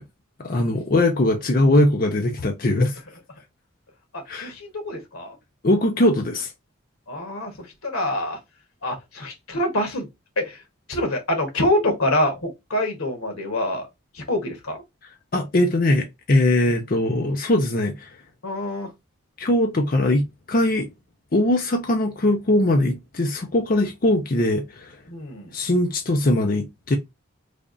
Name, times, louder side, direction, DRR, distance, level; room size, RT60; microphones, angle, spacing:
voice 1, 0.4-3.0 4.3-4.5 5.6-6.5 15.3-18.1 19.4-20.9 21.3-25.0 25.5-27.0, left 1 dB, 45° left, 0.6 m, -21 dB
voice 2, 4.1-5.4 7.1-8.4 8.8-10.1 10.4-10.6 10.9-13.9 14.1-14.8 18.4-18.9 25.1-25.5, left 1 dB, 90° left, 1.4 m, -26 dB
3.4 x 2.5 x 3.8 m
head